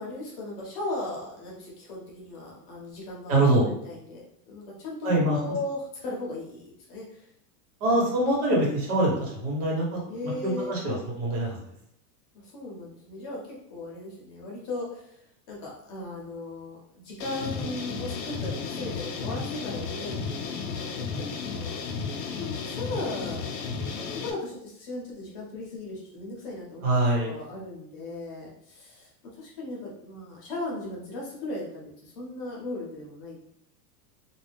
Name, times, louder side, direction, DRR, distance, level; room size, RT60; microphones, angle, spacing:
voice 1, 0.0-7.3 10.1-10.7 12.3-15.2 15.5-21.8 22.1-26.8 27.3-33.4, left 2 dB, 35° left, -3 dB, 0.7 m, -37 dB
voice 2, 3.3-3.7 5.0-5.4 7.8-11.6 26.8-27.3, right 1 dB, 65° right, -3 dB, 1.3 m, -24 dB
sound 1, 17.2-24.3, left 5 dB, 80° left, 0.6 m, -33 dB
2.5 x 2.3 x 3.3 m, 0.73 s
supercardioid pair, 170°, 48 cm